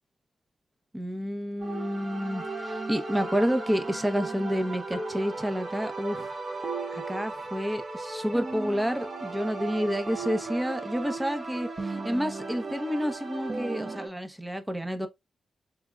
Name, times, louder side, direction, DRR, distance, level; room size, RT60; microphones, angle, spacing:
voice 1, 0.9-6.3 6.9-15.1, equal, 10° right, 0.8 m, -29 dB
sound 1, 1.6-14.1, right 3 dB, 40° right, 1.2 m, -36 dB
3.6 x 3.4 x 2.2 m
cardioid pair, 60°, 0 cm